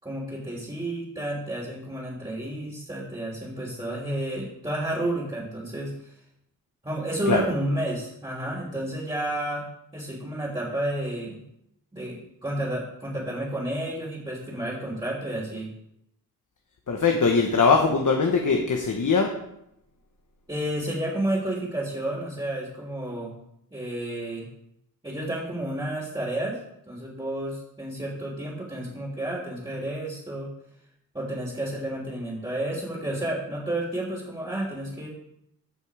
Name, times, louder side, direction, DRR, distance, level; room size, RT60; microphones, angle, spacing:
voice 1, 0.0-5.9 6.8-9.7 9.9-11.4 11.9-15.7 20.5-23.3 23.7-24.5 25.0-26.6 26.9-30.5 31.1-35.1, right 1 dB, 15° right, -6 dB, 3.3 m, -31 dB
voice 2, 16.9-19.3, left 4 dB, 55° left, 3 dB, 1.3 m, -21 dB
15.5 x 5.4 x 5.0 m, 0.79 s
wide cardioid pair, 75°, 36 cm